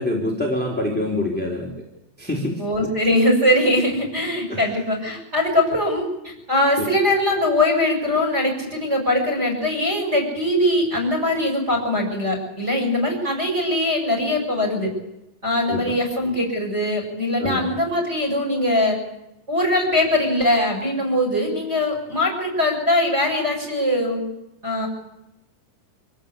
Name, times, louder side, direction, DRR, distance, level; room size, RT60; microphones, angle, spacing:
voice 1, 0.0-1.7 2.2-2.6 4.5-4.6 15.7-16.0 17.4-17.7, left 1 dB, 5° left, -2 dB, 3.0 m, -25 dB
voice 2, 2.6-14.9 15.4-19.0 19.5-24.2 24.6-24.9, left 1 dB, 15° right, 2 dB, 7.2 m, -21 dB
26.0 x 16.5 x 8.5 m, 0.91 s
omnidirectional pair, 4.5 m